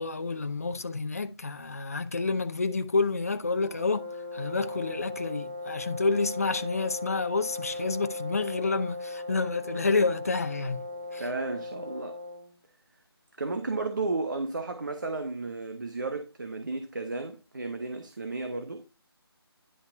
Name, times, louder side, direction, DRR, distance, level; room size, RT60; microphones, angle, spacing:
voice 1, 0.0-4.0 4.3-11.3, left 3 dB, 35° left, 0.7 m, -29 dB
sound 1, 3.6-12.5, left 2 dB, 10° right, 0.7 m, -38 dB
voice 2, 11.2-12.2 13.4-18.8, right 3 dB, 45° right, 1.3 m, -33 dB
11.0 x 5.5 x 3.4 m
figure-of-eight pair, 175°, 14 cm